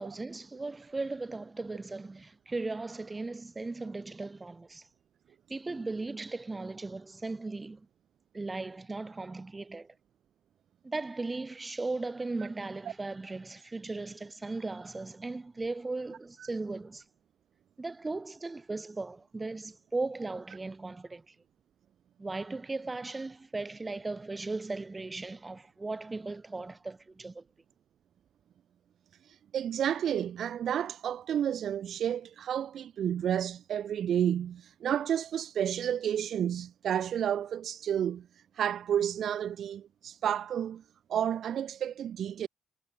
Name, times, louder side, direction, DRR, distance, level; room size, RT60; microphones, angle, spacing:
voice 1, 0.0-4.8 5.5-7.9 8.3-9.9 10.8-17.0 17.8-21.2 22.2-27.4, right 3 dB, 20° right, 4.4 m, -37 dB
voice 2, 29.5-38.3 38.6-40.8 41.1-42.5, right 9 dB, 65° right, 1.5 m, -31 dB
cardioid pair, 90°, 0 cm